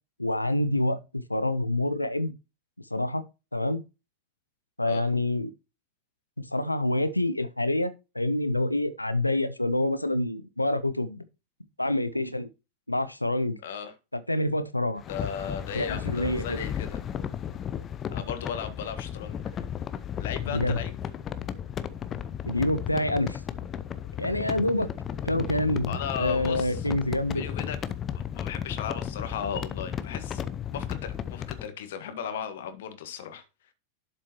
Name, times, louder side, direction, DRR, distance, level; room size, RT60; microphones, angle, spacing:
voice 1, 0.2-2.3 2.9-3.2 3.5-3.8 4.8-5.5 6.4-11.2 11.8-12.5 12.9-13.6 14.1-15.0 15.7-16.6 20.4-20.8 22.4-23.4 24.2-24.9 25.2-27.4, left 1 dB, 85° left, 0.8 m, -27 dB
voice 2, 13.6-13.9 15.1-17.0 18.1-19.6 20.2-21.0 25.9-26.9 27.3-27.8 28.3-30.4 30.7-33.4, left 7 dB, 55° left, 1.6 m, -36 dB
sound 1, 15.0-31.7, left 9 dB, 25° left, 0.7 m, -34 dB
11.5 x 7.2 x 3.0 m
figure-of-eight pair, 90°, 0 cm